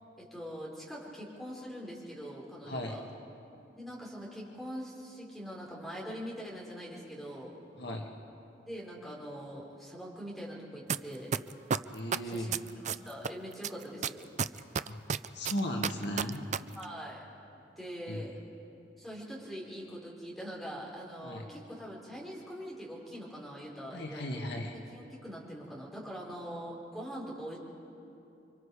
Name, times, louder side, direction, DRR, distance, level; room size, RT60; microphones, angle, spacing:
voice 1, 0.2-3.0 3.7-7.6 8.7-11.3 12.2-12.5 12.8-14.3 16.7-17.2 17.8-18.3 19.0-24.4 24.7-27.6, equal, ahead, -4 dB, 4.7 m, -43 dB
voice 2, 2.7-3.0 7.8-8.1 11.9-12.5 14.9-15.0 15.3-16.4 18.1-18.2 21.2-21.4 23.9-24.7, equal, 65° left, 1 dB, 1.8 m, -36 dB
sound 1, 10.9-11.0 11.3-13.3 13.6-16.6 16.8-16.9, right 7 dB, 40° right, 0.4 m, -30 dB
30.0 x 24.5 x 4.9 m, 2.8 s
head